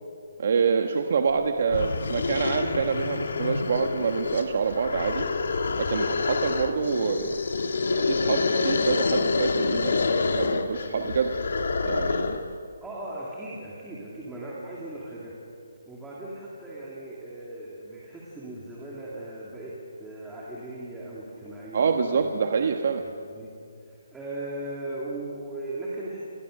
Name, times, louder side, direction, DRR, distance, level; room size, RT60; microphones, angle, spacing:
voice 1, 0.4-5.3 5.8-7.4 7.9-9.9 10.3-11.3 11.8-12.4 21.7-23.0, right 5 dB, 45° right, 5 dB, 1.3 m, -26 dB
sound 1, 1.3-1.4 1.7-12.5, left 4 dB, 70° left, 1.9 m, -27 dB
voice 2, 12.8-15.3 15.9-21.9 22.1-22.4 23.0-23.5 23.8-26.2, right 1 dB, 5° right, -7 dB, 2.7 m, -38 dB
29.5 x 21.0 x 6.6 m, 2.4 s
hypercardioid pair, 175°, 0 cm